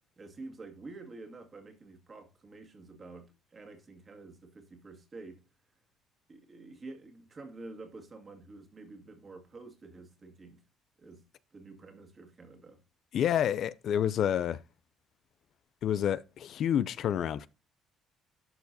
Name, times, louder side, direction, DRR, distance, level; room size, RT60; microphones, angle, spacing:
voice 1, 0.2-5.4 6.3-10.6 11.0-11.2 11.5-12.8, right 3 dB, 35° right, 2.0 m, -48 dB
voice 2, 13.1-14.6 15.8-17.5, left 9 dB, 65° left, 0.4 m, -28 dB
12.0 x 4.6 x 2.7 m
supercardioid pair, 85°, 0 cm